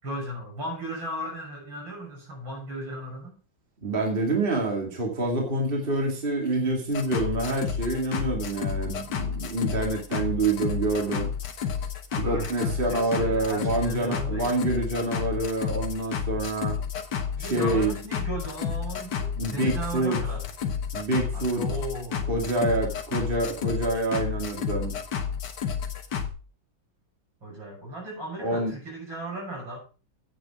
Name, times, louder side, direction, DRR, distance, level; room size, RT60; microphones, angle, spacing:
voice 1, 0.0-3.4 12.1-14.6 17.4-20.5 21.3-22.3 27.4-29.8, right 1 dB, 75° right, -1 dB, 7.1 m, -36 dB
voice 2, 3.8-11.3 12.3-16.8 17.4-17.9 19.4-20.2 20.9-21.6 22.3-25.0 28.4-28.7, right 2 dB, 30° right, 1 dB, 2.5 m, -27 dB
sound 1, 6.9-26.3, left 7 dB, 60° left, 1.9 m, -31 dB
9.5 x 9.0 x 4.8 m, 0.35 s
omnidirectional pair, 2.1 m